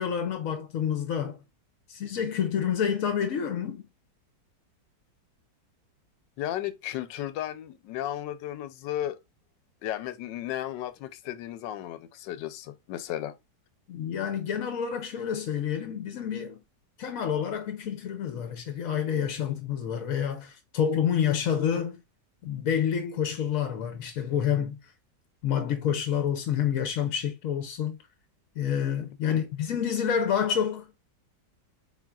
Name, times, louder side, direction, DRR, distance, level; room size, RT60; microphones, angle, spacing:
voice 1, 0.0-1.4 1.9-3.8 13.9-16.6 17.0-22.0 22.4-24.8 25.4-28.0 28.6-31.0, left 8 dB, 60° left, 1.0 m, -28 dB
voice 2, 6.4-9.2 9.8-13.3 29.3-29.4, left 12 dB, 90° left, 1.3 m, -34 dB
4.4 x 4.0 x 2.3 m
omnidirectional pair, 1.9 m